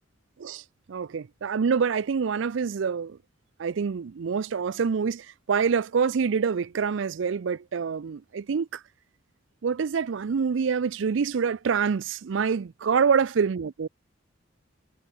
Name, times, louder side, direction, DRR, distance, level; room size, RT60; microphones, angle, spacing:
voice 1, 0.4-3.2 3.6-8.8 9.6-13.9, right 6 dB, 70° right, 0.4 m, -26 dB
head